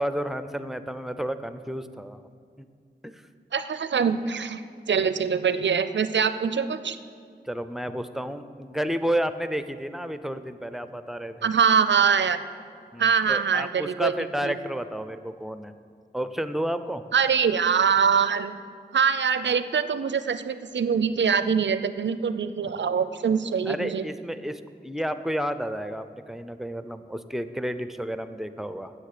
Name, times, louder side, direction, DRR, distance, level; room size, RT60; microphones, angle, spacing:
voice 1, 0.0-2.2 2.6-2.7 3.0-3.2 5.0-5.1 7.5-11.5 12.9-15.7 16.1-17.0 23.7-28.9, equal, ahead, 10 dB, 0.5 m, -31 dB
voice 2, 3.5-4.6 4.9-7.0 11.4-12.4 13.0-14.1 14.4-14.5 17.1-18.5 18.9-24.0, right 6 dB, 85° right, 12 dB, 0.5 m, -23 dB
9.8 x 7.7 x 6.7 m, 2.2 s
wide cardioid pair, 70°, 18 cm